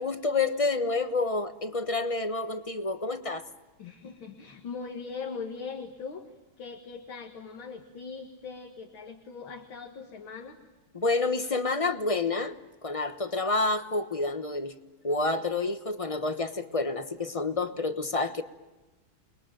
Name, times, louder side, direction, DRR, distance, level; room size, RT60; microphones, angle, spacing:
voice 1, 0.0-3.5 10.9-12.6 12.8-14.7 15.0-18.4, left 3 dB, 25° left, 9 dB, 0.7 m, -28 dB
voice 2, 3.8-6.3 6.6-10.6, left 5 dB, 70° left, 3 dB, 2.7 m, -40 dB
30.0 x 22.0 x 9.0 m, 1.1 s
omnidirectional pair, 2.3 m